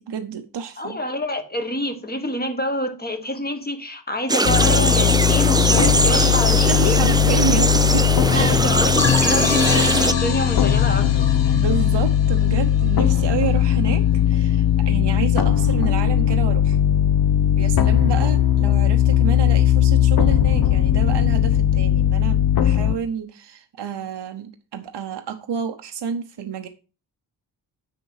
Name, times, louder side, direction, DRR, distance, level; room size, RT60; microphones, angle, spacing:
voice 1, 0.0-1.0 6.7-8.1 8.3-8.6 11.5-16.8 17.6-26.7, right 7 dB, 75° right, 0.8 m, -29 dB
voice 2, 0.8-7.0 8.3-11.3, left 1 dB, 20° left, 1.4 m, -27 dB
sound 1, 4.3-10.1, right 2 dB, 10° right, 0.5 m, -21 dB
sound 2, 4.5-23.0, left 10 dB, 55° left, 0.8 m, -18 dB
sound 3, 9.0-13.4, left 7 dB, 85° left, 1.2 m, -28 dB
8.5 x 6.4 x 4.9 m
wide cardioid pair, 130°, 43 cm